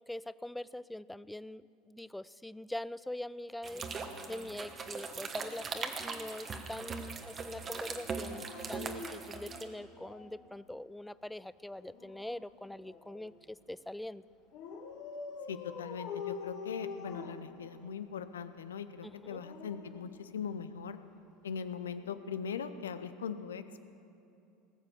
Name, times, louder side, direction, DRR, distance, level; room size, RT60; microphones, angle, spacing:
voice 1, 0.0-3.8 4.3-14.2 19.0-19.4, left 1 dB, 5° left, 18 dB, 0.3 m, -43 dB
sound 1, 3.6-9.6, right 5 dB, 30° right, 1.2 m, -40 dB
Dog, 3.7-5.6 8.0-10.4 11.7-13.4 14.5-18.1 19.1-20.7 22.0-22.2, left 5 dB, 55° left, 1.4 m, -46 dB
voice 2, 15.5-21.0 21.4-23.8, left 6 dB, 75° left, 11 dB, 0.6 m, -40 dB
19.0 x 7.4 x 7.0 m, 2.8 s
figure-of-eight pair, 75°, 0 cm